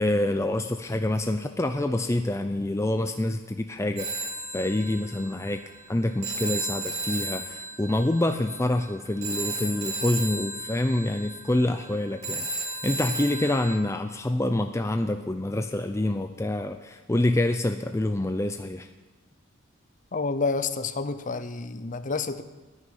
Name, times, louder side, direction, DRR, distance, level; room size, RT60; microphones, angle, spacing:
voice 1, 0.0-5.6 5.9-18.9, left 1 dB, 15° left, 6 dB, 0.5 m, -27 dB
Telephone, 4.0-13.7, right 2 dB, 35° right, 2.6 m, -34 dB
voice 2, 20.1-22.4, left 4 dB, 40° left, 11 dB, 0.8 m, -29 dB
10.5 x 9.8 x 10.0 m, 1.2 s
head